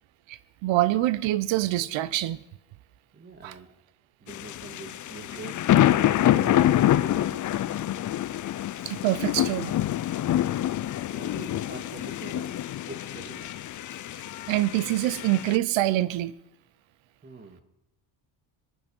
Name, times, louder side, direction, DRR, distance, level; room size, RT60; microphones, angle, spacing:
voice 1, 0.3-2.4 3.4-3.5 8.9-9.7 14.5-16.3, right 15 dB, 90° right, 0.8 m, -25 dB
voice 2, 3.1-3.7 4.2-5.6 6.2-7.4 10.7-12.5 12.9-13.6 17.2-17.6, right 3 dB, 25° right, 1.9 m, -44 dB
sound 1, 4.3-15.6, left 12 dB, 45° left, 0.6 m, -26 dB
25.0 x 10.5 x 5.4 m
cardioid pair, 135°, 44 cm